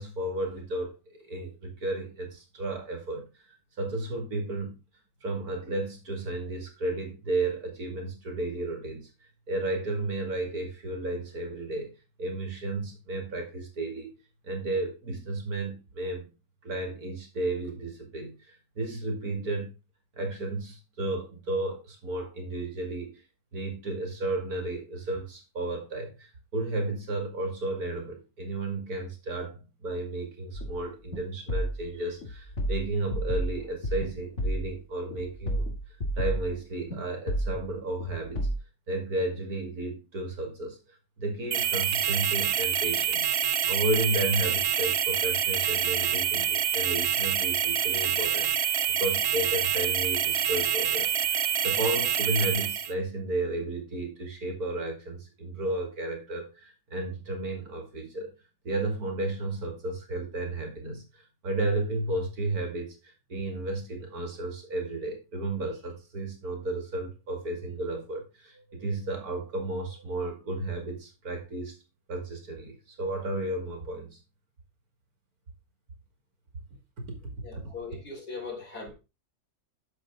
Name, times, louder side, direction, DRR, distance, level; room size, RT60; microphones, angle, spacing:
voice 1, 0.0-3.3 3.8-4.8 5.2-9.1 9.5-11.9 12.2-14.2 14.4-16.3 16.6-19.8 20.2-23.2 23.5-38.5 38.9-43.3 43.7-48.7 49.0-58.3 58.6-63.0 63.3-71.8 72.1-74.2 77.0-77.7, right 2 dB, 75° right, 2.8 m, -33 dB
sound 1, 30.5-30.8 31.1-31.2 31.5-31.8 32.2-34.1 34.4-34.7 35.1-36.5 36.9-37.0 37.3-37.6 38.0-38.6, right 1 dB, 50° left, 2.1 m, -31 dB
sound 2, 41.5-52.9, right 9 dB, 55° right, 0.7 m, -26 dB
voice 2, 77.4-78.9, left 4 dB, 80° left, 4.1 m, -39 dB
8.2 x 6.9 x 3.6 m
omnidirectional pair, 1.6 m